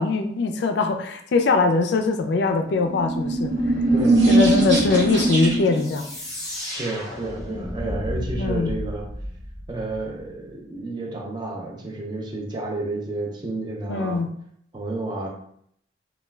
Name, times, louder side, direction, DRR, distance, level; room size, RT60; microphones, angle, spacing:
voice 1, 0.0-3.5 4.3-6.1 8.4-8.7 13.9-14.3, left 3 dB, 65° left, 6 dB, 0.3 m, -22 dB
sound 1, 2.8-5.9, right 2 dB, 70° right, 0.7 m, -20 dB
voice 2, 3.9-4.5 6.8-9.1 9.7-14.3 14.7-15.3, right 2 dB, 25° right, -1 dB, 0.5 m, -31 dB
sound 2, 5.7-10.3, left 1 dB, 20° left, 0.7 m, -33 dB
2.3 x 2.2 x 3.1 m, 0.68 s
head